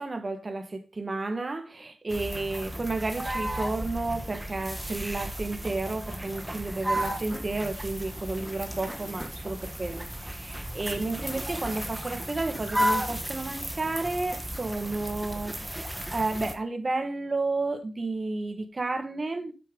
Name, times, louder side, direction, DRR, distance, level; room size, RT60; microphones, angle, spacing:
voice 1, 0.0-19.5, right 3 dB, 35° right, 1.5 m, -32 dB
sound 1, 2.1-16.5, equal, 10° right, 1.3 m, -34 dB
8.6 x 6.8 x 3.8 m
wide cardioid pair, 90°, 0 cm